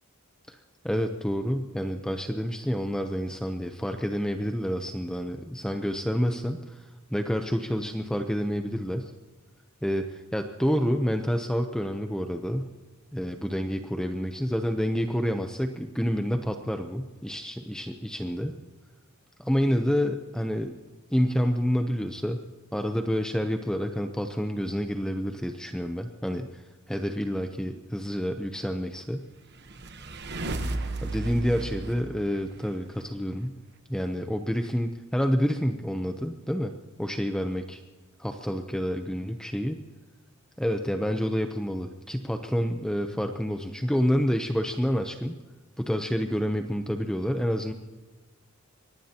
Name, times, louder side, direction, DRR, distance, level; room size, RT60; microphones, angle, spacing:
voice 1, 0.8-9.1 9.8-12.7 13.1-18.6 19.4-20.7 21.1-22.4 22.7-26.6 26.9-29.3 31.0-33.6 33.9-37.8 38.2-39.8 40.6-45.4 45.8-47.7, equal, 5° left, 5 dB, 0.7 m, -28 dB
sound 1, 29.4-33.0, right 2 dB, 50° right, 1.1 m, -34 dB
24.0 x 18.5 x 2.9 m, 1.2 s
head